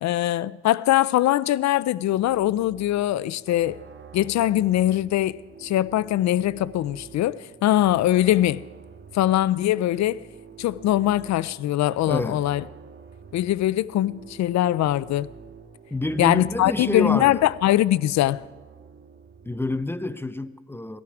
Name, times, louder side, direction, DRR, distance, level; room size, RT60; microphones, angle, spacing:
voice 1, 0.0-3.8 4.1-8.6 9.1-10.2 10.6-12.6 13.3-15.3 16.2-18.4, left 14 dB, 65° left, 0.5 m, -22 dB
sound 1, 2.0-20.1, right 6 dB, 40° right, 1.5 m, -47 dB
voice 2, 12.1-12.4 15.9-17.4 19.4-21.0, left 2 dB, 10° left, 0.5 m, -28 dB
18.5 x 13.0 x 4.8 m
cardioid pair, 90°, 30 cm